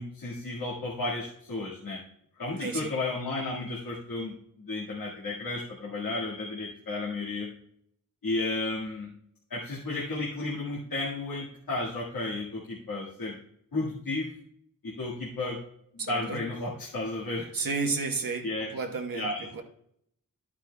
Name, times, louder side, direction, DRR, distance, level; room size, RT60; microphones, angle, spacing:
voice 1, 0.0-2.0 2.4-7.5 8.2-9.1 9.5-13.4 13.7-14.3 14.8-15.6 15.9-17.5 18.4-18.7 19.1-19.6, left 2 dB, 75° left, -6 dB, 1.9 m, -33 dB
voice 2, 16.0-16.4 17.5-18.5 18.7-19.6, right 4 dB, 70° right, 2 dB, 1.3 m, -32 dB
11.5 x 8.8 x 2.3 m, 0.71 s
wide cardioid pair, 70°, 36 cm